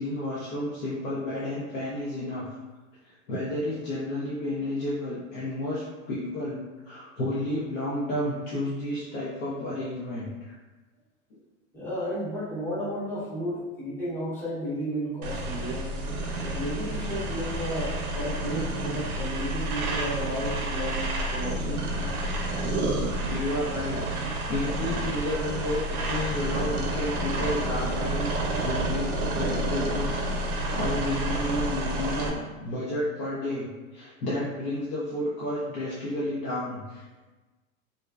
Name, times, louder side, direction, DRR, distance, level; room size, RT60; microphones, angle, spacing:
voice 1, 0.0-2.4 3.3-10.5 23.2-30.2 30.7-37.1, left 1 dB, 75° left, -8 dB, 0.8 m, -31 dB
voice 2, 11.7-15.9 16.4-22.1, equal, 5° left, -9 dB, 0.6 m, -33 dB
sound 1, 15.2-32.3, right 1 dB, 90° right, 0.6 m, -29 dB
2.6 x 2.2 x 2.2 m, 1.2 s
hypercardioid pair, 115°, 42 cm